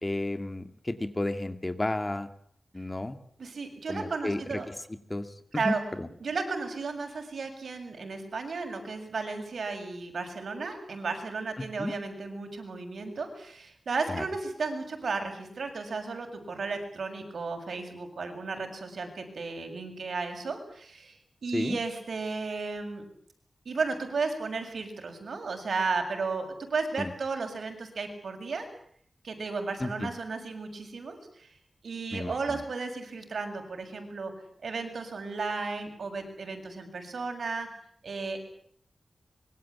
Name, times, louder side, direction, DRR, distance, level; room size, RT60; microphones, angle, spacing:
voice 1, 0.0-2.3 2.7-3.2 3.9-4.8 5.1-6.1 11.6-11.9 14.1-14.2 21.5-21.8 27.0-27.1 29.8-30.1 32.1-32.6, left 2 dB, 20° left, 10 dB, 2.3 m, -32 dB
voice 2, 3.4-4.7 5.5-5.8 6.2-23.0 23.7-28.7 29.2-31.5 31.8-34.3 34.6-37.7 38.0-38.4, right 4 dB, 80° right, 5 dB, 7.2 m, -34 dB
25.5 x 24.0 x 8.4 m, 0.63 s
wide cardioid pair, 115°, 0 cm